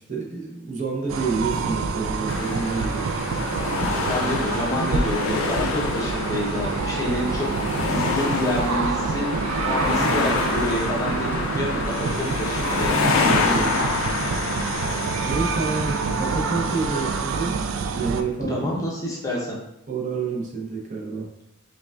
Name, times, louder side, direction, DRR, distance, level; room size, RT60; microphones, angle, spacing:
voice 1, 0.0-3.1 13.2-13.8 15.2-17.6 17.9-18.6 19.9-21.3, right 4 dB, 40° right, -2 dB, 0.7 m, -28 dB
sound 1, 1.1-18.2, right 5 dB, 75° right, 0.3 m, -27 dB
sound 2, 2.3-17.2, left 4 dB, 80° left, 0.4 m, -27 dB
voice 2, 3.8-7.5 7.8-9.3 9.6-12.9 18.4-19.6, left 1 dB, 15° left, -4 dB, 0.6 m, -28 dB
5.0 x 2.3 x 2.3 m, 0.83 s
head